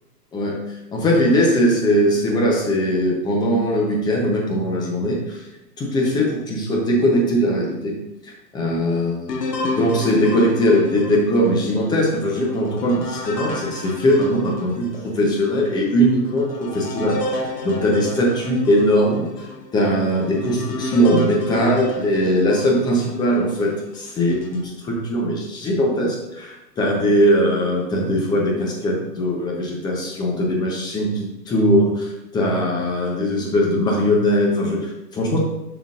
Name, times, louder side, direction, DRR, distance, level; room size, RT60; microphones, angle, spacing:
voice 1, 0.9-5.4 5.8-7.9 8.5-9.3 9.6-19.5 19.7-35.4, equal, 10° left, -1 dB, 0.7 m, -20 dB
sound 1, 9.3-15.0 15.6-15.7 16.3-23.5 24.1-24.7, left 2 dB, 75° left, 1.4 m, -31 dB
7.3 x 5.8 x 2.5 m, 0.93 s
hypercardioid pair, 135°, 49 cm